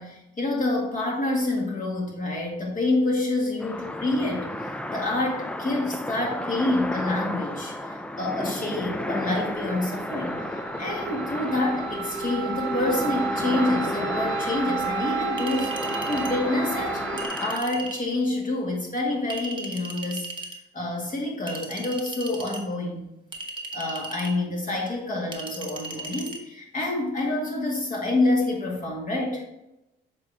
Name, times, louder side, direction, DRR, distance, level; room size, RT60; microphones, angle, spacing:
voice 1, 0.0-15.7 16.1-20.4 20.7-23.0 23.7-29.5, left 2 dB, 40° left, -1 dB, 2.1 m, -27 dB
sound 1, 3.6-17.6, left 1 dB, 5° left, 0.4 m, -33 dB
sound 2, 8.8-17.3, right 4 dB, 90° right, 1.3 m, -32 dB
Chink clink, 15.4-16.4 17.2-18.0 19.3-20.6 21.5-22.6 23.3-24.4 25.3-26.4, right 3 dB, 25° right, 1.1 m, -36 dB
6.8 x 4.4 x 3.6 m, 0.89 s
cardioid pair, 90°, 20 cm